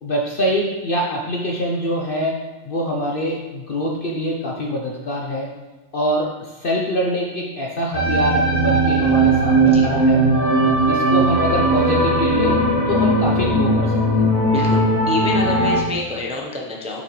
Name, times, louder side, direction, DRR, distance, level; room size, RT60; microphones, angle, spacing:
voice 1, 0.0-5.5 5.9-10.2 10.8-14.2, equal, 50° left, -1 dB, 0.7 m, -24 dB
sound 1, 7.9-15.8, right 1 dB, 30° right, 1.2 m, -17 dB
voice 2, 14.5-17.0, left 2 dB, 5° right, -2 dB, 0.5 m, -27 dB
6.7 x 6.2 x 3.1 m, 1.3 s
omnidirectional pair, 1.6 m